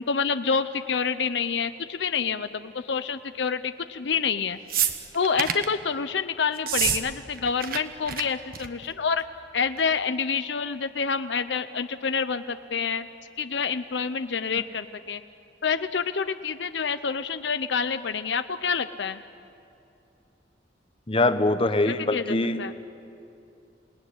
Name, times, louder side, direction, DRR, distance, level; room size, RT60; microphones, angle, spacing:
voice 1, 0.0-4.6 5.1-9.2 9.5-13.1 13.4-15.2 15.6-19.2 21.8-22.7, left 6 dB, 70° left, 11 dB, 0.7 m, -27 dB
sound 1, 4.7-5.7 6.6-7.0 7.3-7.8 8.1-8.2 8.5-8.8 9.8-9.9, right 9 dB, 55° right, 1.3 m, -27 dB
voice 2, 21.1-22.7, left 2 dB, 30° left, 9 dB, 1.1 m, -23 dB
28.0 x 19.0 x 10.0 m, 2.7 s
head